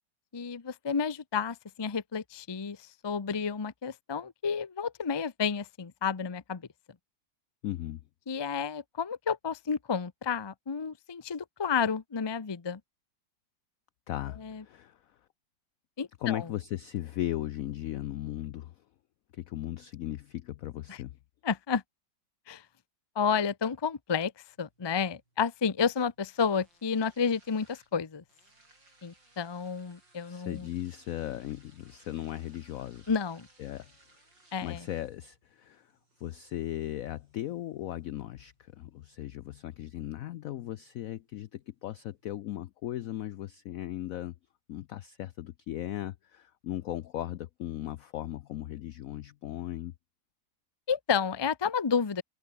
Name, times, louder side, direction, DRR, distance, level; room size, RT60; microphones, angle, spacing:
voice 1, 0.3-6.6 8.3-12.8 14.4-14.6 16.0-16.4 20.9-21.0 21.4-21.8 22.5-22.6 23.2-24.3 24.6-28.2 29.0-30.7 33.1-33.5 34.5-34.8 50.9-52.2, left 6 dB, 35° left, 0.4 m, -31 dB
voice 2, 7.6-8.0 14.1-15.2 16.2-18.8 19.3-21.2 30.3-33.1 33.6-33.9 34.6-35.9 36.2-44.4 44.7-49.9, left 13 dB, 75° left, 0.7 m, -37 dB
sound 1, 24.5-42.5, right 2 dB, 75° right, 8.5 m, -65 dB
omnidirectional pair, 2.0 m